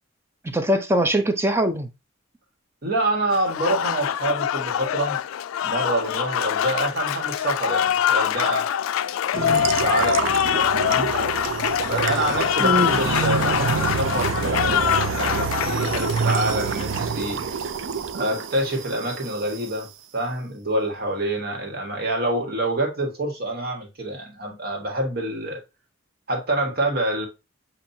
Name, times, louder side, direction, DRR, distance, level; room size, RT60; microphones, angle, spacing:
voice 1, 0.5-1.9 9.3-9.6 12.6-12.9, right 1 dB, 10° right, 0.5 m, -22 dB
voice 2, 2.8-5.2 5.6-8.7 9.4-10.3 10.7-11.1 11.9-17.4 18.1-25.6 26.3-27.3, right 1 dB, 50° right, 1.5 m, -26 dB
Applause, 3.3-17.0, left 10 dB, 85° left, 0.3 m, -24 dB
sound 1, 9.3-19.8, right 5 dB, 65° right, 0.4 m, -27 dB
7.2 x 2.6 x 2.7 m
head